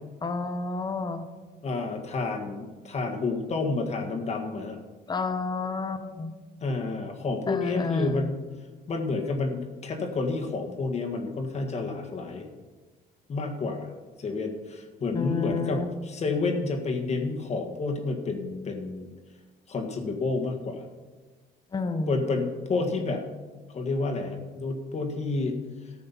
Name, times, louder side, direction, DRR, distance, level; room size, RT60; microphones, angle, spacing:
voice 1, 0.2-1.3 5.1-6.3 7.5-8.3 15.1-15.8 21.7-22.2, left 3 dB, 25° left, 9 dB, 1.0 m, -30 dB
voice 2, 1.6-4.8 6.6-8.4 8.9-12.5 13.3-13.9 14.2-19.1 19.7-20.9 22.1-23.2 23.7-25.6, left 3 dB, 40° left, 3 dB, 1.8 m, -29 dB
14.0 x 6.5 x 5.7 m, 1.3 s
cardioid pair, 110°, 17 cm